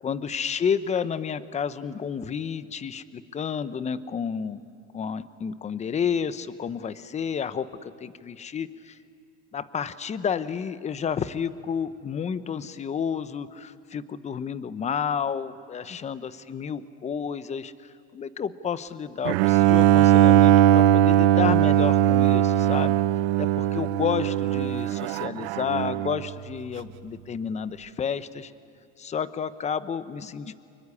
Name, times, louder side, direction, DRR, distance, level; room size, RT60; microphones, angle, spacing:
voice 1, 0.0-4.6 4.9-9.0 9.5-23.0 23.4-28.5 29.0-30.5, left 7 dB, 20° left, 14 dB, 0.9 m, -31 dB
Bowed string instrument, 19.2-26.3, right 12 dB, 70° right, 0.7 m, -19 dB
25.5 x 22.0 x 9.9 m, 2.4 s
supercardioid pair, 120°, 31 cm